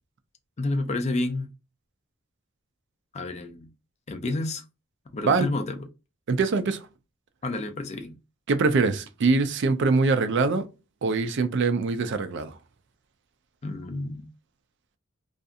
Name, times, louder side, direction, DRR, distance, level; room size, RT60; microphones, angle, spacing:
voice 1, 0.6-1.5 3.1-3.7 4.1-4.6 5.1-5.9 7.4-8.2 13.6-14.3, left 2 dB, 35° left, 0.4 m, -30 dB
voice 2, 6.3-6.8 8.5-10.7 11.0-12.5, right 4 dB, 60° right, 0.4 m, -23 dB
2.6 x 2.4 x 2.4 m
head